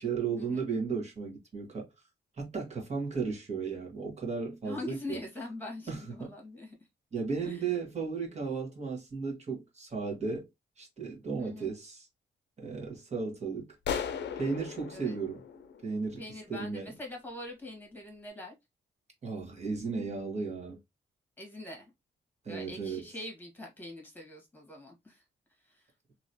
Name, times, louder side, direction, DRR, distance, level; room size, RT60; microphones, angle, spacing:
voice 1, 0.0-1.9 2.4-5.2 5.9-6.3 7.1-10.5 10.8-12.1 12.6-13.7 14.3-15.4 15.8-16.2 16.5-16.9 19.2-20.8 22.4-23.0, right 5 dB, 35° right, 1.5 m, -35 dB
voice 2, 4.6-6.8 7.4-7.7 11.4-11.7 14.9-15.2 16.2-18.5 21.4-21.9 22.5-25.2 25.6-25.9, left 2 dB, 10° left, 1.5 m, -43 dB
sound 1, 13.8-16.4, left 8 dB, 75° left, 0.6 m, -37 dB
3.0 x 2.8 x 2.7 m
cardioid pair, 115°, 19 cm